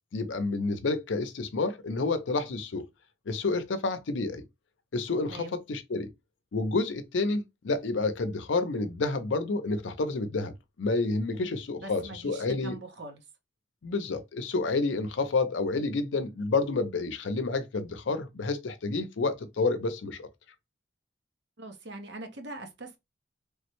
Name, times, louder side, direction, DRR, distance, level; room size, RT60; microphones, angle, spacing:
voice 1, 0.1-2.9 3.3-4.4 4.9-6.1 6.5-12.8 13.8-20.3, left 3 dB, 85° left, 0.5 m, -29 dB
voice 2, 11.8-13.2 21.6-23.0, right 2 dB, 65° right, 0.8 m, -42 dB
3.4 x 2.1 x 2.9 m
head